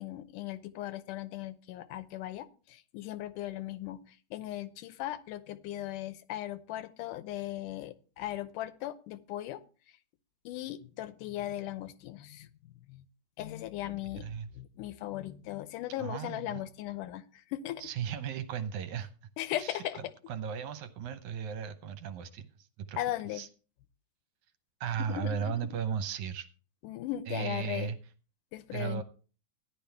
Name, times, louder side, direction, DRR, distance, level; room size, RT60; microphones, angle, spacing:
voice 1, 0.0-9.6 10.5-13.1 13.4-14.3 14.5-17.9 19.4-20.0 23.0-23.4 25.0-25.6 26.8-27.9 28.5-29.0, left 14 dB, 80° left, 13 dB, 2.1 m, -38 dB
voice 2, 14.2-14.5 16.0-16.6 17.8-19.1 19.6-19.8 20.3-23.0 23.3-23.5 24.8-26.5 27.3-28.0 28.7-29.0, right 7 dB, 70° right, 10 dB, 2.1 m, -36 dB
14.0 x 10.5 x 3.4 m, 0.37 s
omnidirectional pair, 3.8 m